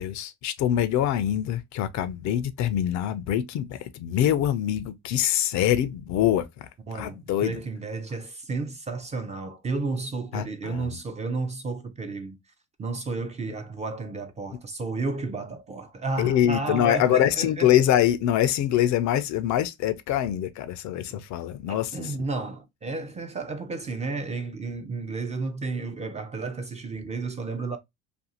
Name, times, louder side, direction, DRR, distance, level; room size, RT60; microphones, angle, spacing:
voice 1, 0.0-7.6 10.3-11.0 16.2-22.3, left 11 dB, 55° left, 0.4 m, -24 dB
voice 2, 6.9-12.4 12.8-17.7 20.9-21.1 21.7-27.8, right 3 dB, 20° right, 0.4 m, -32 dB
2.5 x 2.3 x 2.7 m
supercardioid pair, 95°, 34 cm